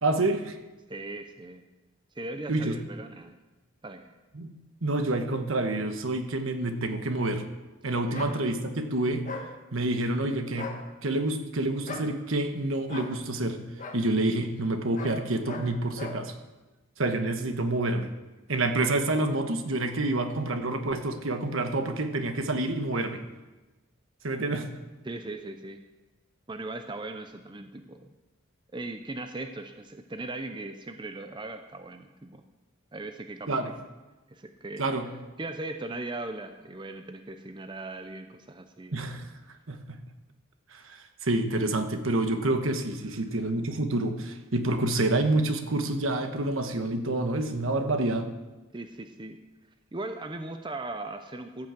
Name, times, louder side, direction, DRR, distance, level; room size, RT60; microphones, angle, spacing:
voice 1, 0.0-0.6 2.5-2.7 4.3-4.5 4.8-7.5 7.8-9.3 9.7-10.7 11.0-13.6 13.9-16.3 17.0-18.1 18.5-23.2 24.2-24.7 33.5-33.7 34.8-35.1 38.9-39.3 39.7-39.8 40.7-48.3, right 2 dB, 75° right, 7 dB, 1.2 m, -28 dB
voice 2, 0.9-1.6 2.1-3.4 3.8-4.1 8.1-8.3 25.0-25.8 26.5-28.1 28.7-32.4 32.9-33.6 34.3-34.9 35.4-39.0 48.7-49.4 49.9-51.7, right 2 dB, 25° right, 7 dB, 0.6 m, -38 dB
sound 1, 8.1-8.3 9.2-9.5 10.5-10.8 11.9-12.1 12.9-13.1 13.8-14.0 14.9-15.2 15.4-15.7 16.0-16.2, left 3 dB, 40° left, 1.5 m, -38 dB
14.5 x 6.1 x 7.6 m, 1.1 s
head